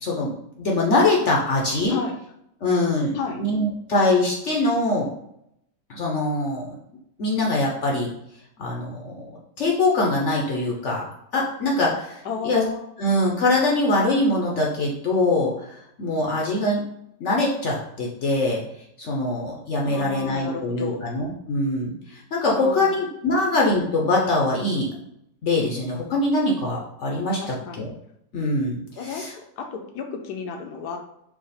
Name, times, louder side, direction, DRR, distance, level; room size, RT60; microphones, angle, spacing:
voice 1, 0.0-2.0 2.6-5.1 5.9-6.8 7.2-8.1 8.6-11.0 11.3-12.6 13.0-16.8 17.2-18.6 19.0-24.9 25.4-27.9 28.3-29.3, left 2 dB, 55° left, -2 dB, 0.9 m, -23 dB
voice 2, 12.2-12.9 19.8-21.0 22.6-23.0 27.4-27.9 29.0-31.0, left 5 dB, 75° left, 4 dB, 1.2 m, -33 dB
4.8 x 2.4 x 4.1 m, 0.77 s
omnidirectional pair, 1.8 m